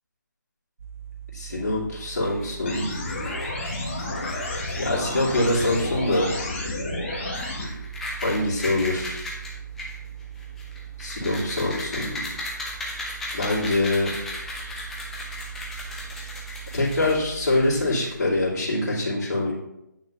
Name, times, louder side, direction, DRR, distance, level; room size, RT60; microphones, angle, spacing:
sound 1, 0.8-17.9, right 10 dB, 45° right, 0.8 m, -41 dB
voice 1, 1.3-2.9 4.7-6.3 8.2-9.2 11.0-12.2 13.3-14.1 16.7-19.5, left 2 dB, 55° left, -6 dB, 2.8 m, -24 dB
sound 2, 2.2-18.5, left 2 dB, 5° left, 0.4 m, -38 dB
sound 3, 2.7-7.7, left 2 dB, 35° left, 1.5 m, -31 dB
8.9 x 5.9 x 2.6 m, 0.88 s
figure-of-eight pair, 160°, 11 cm